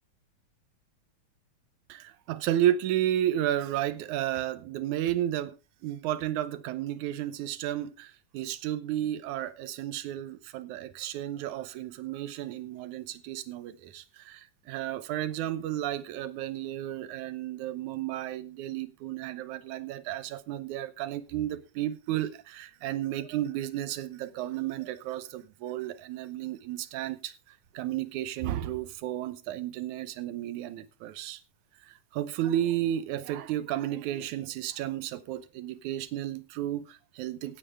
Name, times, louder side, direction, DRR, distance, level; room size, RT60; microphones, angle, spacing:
voice 1, 1.9-5.6 5.8-31.4 31.8-37.6, right 12 dB, 80° right, 2.3 m, -32 dB
16.5 x 8.9 x 3.5 m
omnidirectional pair, 3.4 m